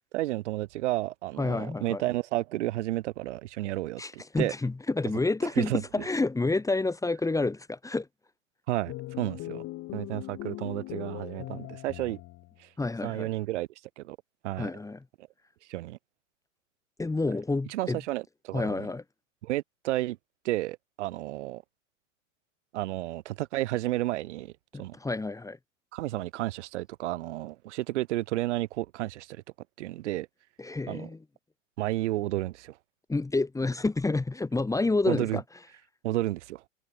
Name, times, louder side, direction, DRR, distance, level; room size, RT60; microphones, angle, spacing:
voice 1, 0.1-4.5 5.6-5.8 8.7-9.6 9.9-12.2 12.6-12.7 13.0-13.7 14.0-14.2 14.4-14.7 15.7-16.0 17.7-18.9 19.4-20.2 20.4-21.6 22.7-24.5 24.8-25.0 25.9-29.4 29.8-30.3 30.9-31.1 31.8-32.8 35.1-35.4 36.0-36.6, right 16 dB, 60° right, 6.8 m, -31 dB
voice 2, 1.4-2.0 4.0-8.1 12.8-13.3 14.6-15.0 17.0-18.0 18.5-19.0 24.7-25.6 30.6-31.2 33.1-35.4, left 3 dB, 10° left, 2.8 m, -29 dB
sound 1, 8.8-12.6, left 18 dB, 40° left, 4.2 m, -40 dB
hypercardioid pair, 105°, 39 cm